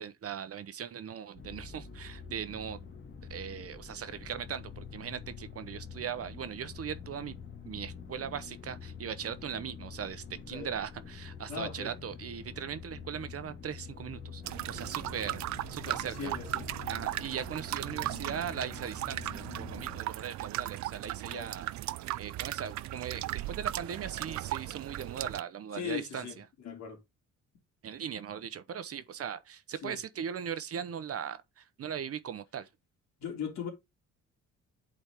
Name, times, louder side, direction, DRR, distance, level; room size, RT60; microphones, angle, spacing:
voice 1, 0.0-2.8 3.3-7.4 7.6-16.3 16.9-21.7 22.2-26.4 27.8-32.7, right 8 dB, 50° right, 0.9 m, -39 dB
sound 1, 1.4-20.0, left 6 dB, 40° left, 1.8 m, -46 dB
voice 2, 11.5-11.9 15.8-16.7 20.7-20.8 21.3-21.5 25.7-26.4 26.6-27.0 29.8-30.0 33.2-33.7, left 7 dB, 65° left, 2.8 m, -39 dB
sound 2, 14.4-25.4, right 15 dB, 65° right, 0.5 m, -37 dB
8.2 x 4.2 x 3.5 m
cardioid pair, 90°, 30 cm